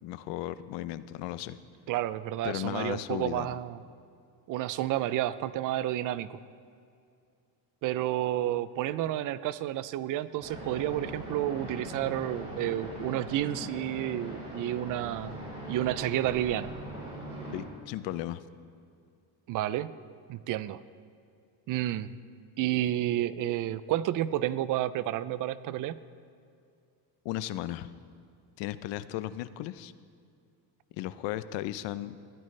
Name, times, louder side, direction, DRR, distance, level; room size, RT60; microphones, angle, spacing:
voice 1, 0.0-1.6 2.4-3.5 17.5-18.4 27.2-27.9 28.6-29.9 30.9-32.2, left 14 dB, 85° left, 14 dB, 0.7 m, -35 dB
voice 2, 1.9-3.8 4.5-6.4 7.8-15.4 15.7-16.7 19.5-19.9 20.3-20.8 21.7-22.1 22.6-26.0, right 13 dB, 50° right, 16 dB, 0.5 m, -30 dB
sound 1, 10.4-17.6, equal, 15° right, 4.5 m, -41 dB
21.5 x 14.0 x 3.3 m, 2.4 s
cardioid pair, 165°, 42 cm